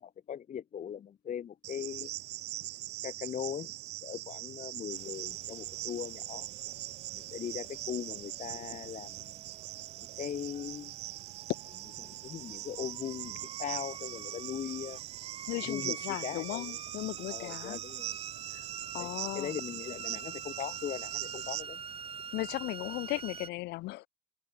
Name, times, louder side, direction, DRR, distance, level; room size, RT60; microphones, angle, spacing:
voice 1, 0.0-2.1 3.0-3.7 4.0-6.7 7.1-9.4 10.0-10.9 12.0-15.0 15.6-16.8 17.3-18.2 19.0-21.8, left 9 dB, 50° left, 3.3 m, -40 dB
Cricket, 1.6-21.6, right 16 dB, 80° right, 3.9 m, -42 dB
sound 1, 4.9-23.5, right 6 dB, 35° right, 1.4 m, -47 dB
voice 2, 15.5-17.8 18.9-19.6 22.3-24.1, left 20 dB, 80° left, 0.6 m, -36 dB
cardioid pair, 110°, 17 cm